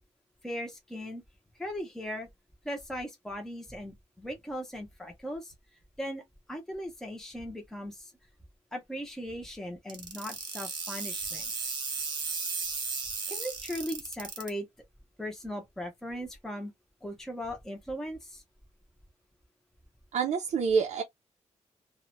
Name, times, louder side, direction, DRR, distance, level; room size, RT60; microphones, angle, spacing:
voice 1, 0.4-1.2 1.6-2.3 2.6-5.5 6.0-6.2 6.5-8.1 8.7-11.7 13.3-14.7 15.2-16.7 17.0-18.4, equal, 5° left, 0.5 m, -38 dB
sound 1, 9.9-14.5, right 4 dB, 40° right, 0.7 m, -35 dB
voice 2, 20.1-21.0, right 6 dB, 75° right, 0.4 m, -27 dB
2.2 x 2.1 x 2.9 m
wide cardioid pair, 165°, 12 cm